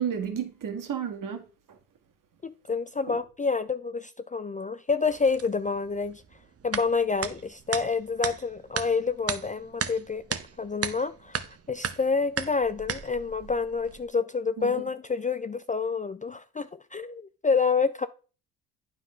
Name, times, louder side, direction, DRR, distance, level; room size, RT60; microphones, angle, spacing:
voice 1, 0.0-1.8 3.1-3.2 14.6-14.7, right 8 dB, 50° right, 1.8 m, -32 dB
voice 2, 2.4-6.2 6.6-10.2 10.6-18.1, left 5 dB, 20° left, 0.4 m, -28 dB
sound 1, 5.1-14.1, right 7 dB, 35° right, 0.9 m, -36 dB
9.0 x 4.0 x 5.5 m
supercardioid pair, 60°, 41 cm